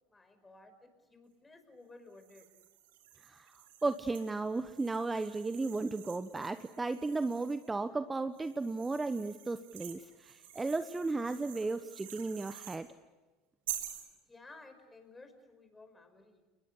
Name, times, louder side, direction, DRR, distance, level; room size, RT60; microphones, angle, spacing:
voice 1, 0.1-2.5 14.3-16.4, left 3 dB, 15° left, 8 dB, 5.4 m, -55 dB
sound 1, 2.2-7.7 8.3-12.8 13.7-14.1, right 11 dB, 70° right, 3.8 m, -48 dB
voice 2, 3.2-12.9, right 3 dB, 15° right, 11 dB, 1.1 m, -35 dB
30.0 x 21.0 x 8.2 m, 1.2 s
hypercardioid pair, 75°, 0 cm